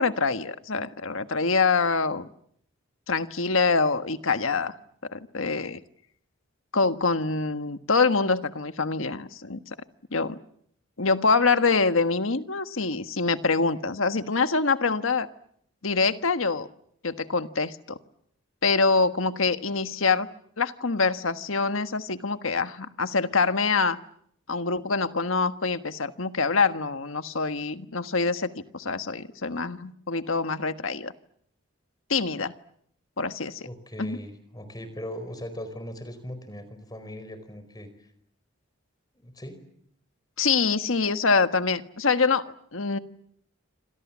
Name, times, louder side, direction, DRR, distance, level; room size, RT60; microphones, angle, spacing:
voice 1, 0.0-2.3 3.1-4.7 5.1-5.8 6.7-9.6 10.1-10.4 11.0-15.3 15.8-16.7 17.0-18.0 18.6-20.3 20.6-24.0 24.5-31.1 32.1-32.5 33.2-33.7 34.0-34.2 40.4-43.0, left 4 dB, 80° left, 10 dB, 1.5 m, -25 dB
voice 2, 33.6-38.1 39.1-39.6, left 1 dB, 20° left, 11 dB, 4.7 m, -39 dB
28.0 x 26.5 x 7.4 m, 0.70 s
head